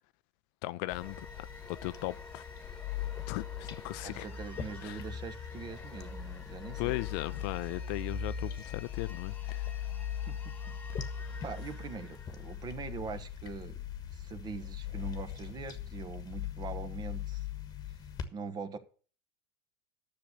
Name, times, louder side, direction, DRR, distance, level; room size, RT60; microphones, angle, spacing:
voice 1, 0.6-2.4 3.3-4.3 4.8-5.0 6.8-9.8, left 19 dB, 55° left, 0.5 m, -38 dB
sound 1, 0.9-18.3, left 9 dB, 30° left, 1.3 m, -40 dB
sound 2, 1.0-13.5, left 3 dB, 10° left, 1.7 m, -51 dB
voice 2, 4.0-7.0 10.3-10.7 11.4-13.8 14.1-17.5 18.3-18.8, right 5 dB, 30° right, 1.3 m, -42 dB
10.5 x 6.8 x 6.6 m
hypercardioid pair, 90°, 13 cm